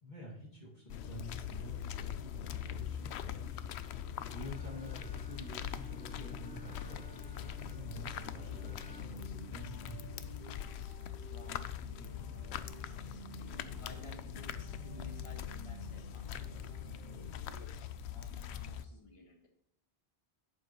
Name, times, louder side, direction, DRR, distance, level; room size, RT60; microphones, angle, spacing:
voice 1, 0.0-10.4, equal, 45° left, -4 dB, 2.3 m, -49 dB
sound 1, 0.9-18.8, left 9 dB, 90° left, 0.8 m, -42 dB
Wind instrument woodwind instrument, 4.2-9.3, left 2 dB, 10° left, 0.6 m, -57 dB
sound 2, 5.5-17.3, right 7 dB, 60° right, 0.6 m, -53 dB
voice 2, 11.0-19.4, left 1 dB, 30° left, 2 dB, 1.6 m, -56 dB
11.0 x 8.4 x 3.0 m, 0.70 s
omnidirectional pair, 1.1 m